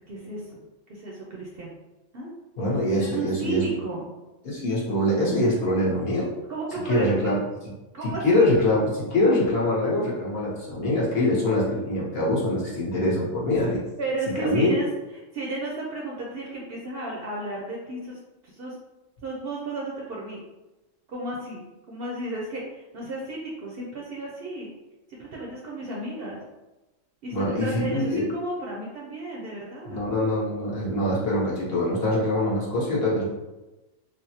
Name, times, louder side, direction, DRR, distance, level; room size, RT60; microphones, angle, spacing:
voice 1, 0.1-0.6 0.9-1.7 2.1-2.3 2.9-4.1 6.5-7.3 7.9-8.5 14.0-14.9 15.3-18.2 18.5-18.7 19.2-20.4 21.1-24.7 25.1-26.4 27.2-30.0, right 2 dB, 60° right, -4 dB, 0.6 m, -33 dB
voice 2, 2.6-3.7 4.4-6.3 6.9-7.4 8.2-13.8 14.4-14.7 27.3-28.3 29.9-33.2, left 1 dB, 55° left, -5 dB, 1.0 m, -24 dB
3.3 x 2.0 x 2.7 m, 1.1 s
omnidirectional pair, 1.3 m